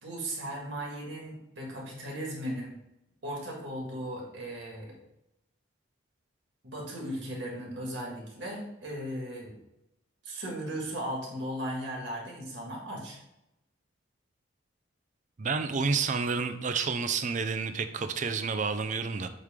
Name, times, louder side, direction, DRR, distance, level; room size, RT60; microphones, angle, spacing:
voice 1, 0.0-2.7 3.2-4.9 6.6-9.5 10.2-13.2, right 1 dB, 65° right, -2 dB, 1.9 m, -37 dB
voice 2, 15.4-19.3, right 5 dB, 40° right, 9 dB, 0.4 m, -30 dB
8.2 x 3.2 x 3.6 m, 0.87 s
head